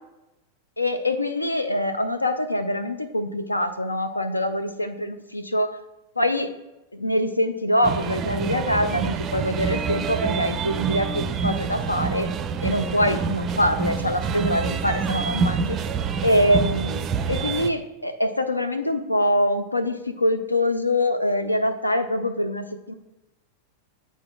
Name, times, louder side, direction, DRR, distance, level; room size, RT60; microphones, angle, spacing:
voice 1, 0.8-5.8 6.2-6.5 6.9-12.3 12.6-15.8 16.2-22.9, left 1 dB, 85° left, 9 dB, 0.5 m, -24 dB
sound 1, 7.8-17.7, right 6 dB, 30° right, 0.4 m, -27 dB
10.5 x 4.0 x 2.4 m, 0.99 s
figure-of-eight pair, 90°, 0 cm